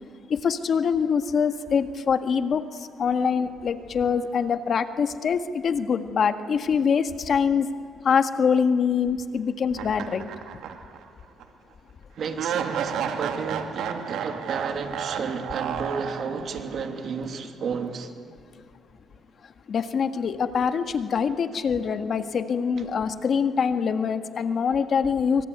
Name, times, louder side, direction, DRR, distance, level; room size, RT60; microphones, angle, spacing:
voice 1, 0.3-2.6 3.0-7.7 8.0-10.3 19.7-25.4, left 6 dB, 55° left, 8 dB, 1.7 m, -24 dB
sound 1, 9.7-11.0 11.4-11.5 12.4-16.7, right 8 dB, 80° right, 2.2 m, -31 dB
voice 2, 12.2-18.1, right 5 dB, 60° right, 6 dB, 2.8 m, -32 dB
25.5 x 24.5 x 9.6 m, 2.1 s
cardioid pair, 90°, 0 cm